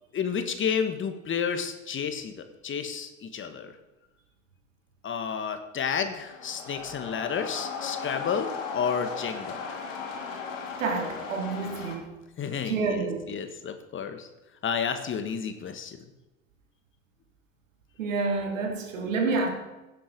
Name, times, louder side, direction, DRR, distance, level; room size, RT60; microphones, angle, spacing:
voice 1, 0.1-2.4 2.6-3.7 5.0-9.6 12.4-14.3 14.6-16.0, left 7 dB, 30° left, 1.6 m, -31 dB
sound 1, 6.1-12.0, left 5 dB, 75° left, 2.9 m, -37 dB
voice 2, 10.8-12.1 12.6-13.2 18.0-19.5, right 4 dB, 75° right, 2.6 m, -28 dB
16.5 x 7.8 x 5.3 m
hypercardioid pair, 80°, 39 cm